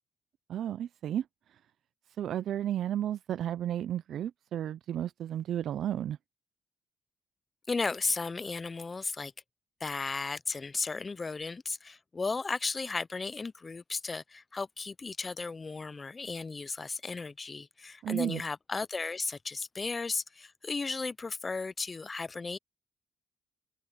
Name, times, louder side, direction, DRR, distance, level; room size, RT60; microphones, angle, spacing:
voice 1, 0.5-1.3 1.5-1.6 2.2-6.2 18.0-18.4, right 11 dB, 70° right, 0.4 m, -33 dB
voice 2, 7.7-9.3 9.8-22.6, left 4 dB, 30° left, 0.5 m, -35 dB
cardioid pair, 90°, 0 cm